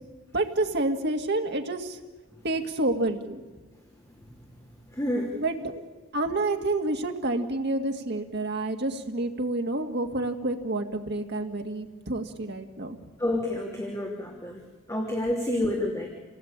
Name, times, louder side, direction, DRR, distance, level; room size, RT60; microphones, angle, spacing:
voice 1, 0.3-2.0 2.4-3.4 5.4-5.9 6.1-13.0, right 2 dB, 55° right, 4 dB, 2.2 m, -29 dB
voice 2, 4.9-5.4 13.2-14.6 14.9-16.1, left 1 dB, 15° left, -1 dB, 3.0 m, -28 dB
28.0 x 18.5 x 8.9 m, 1.2 s
head